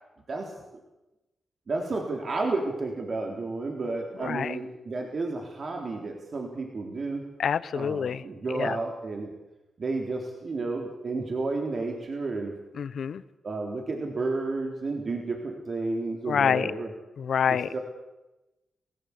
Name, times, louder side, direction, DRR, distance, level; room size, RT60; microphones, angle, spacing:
voice 1, 1.7-7.2 7.7-9.3 9.8-12.5 13.4-16.9 17.5-17.8, right 3 dB, 50° right, 2 dB, 3.9 m, -31 dB
voice 2, 4.2-4.6 7.4-8.2 8.5-8.8 12.8-13.2 16.3-16.7 17.2-17.7, left 7 dB, 70° left, 17 dB, 1.0 m, -27 dB
29.5 x 16.0 x 8.5 m, 1.0 s
cardioid pair, 70°, 0 cm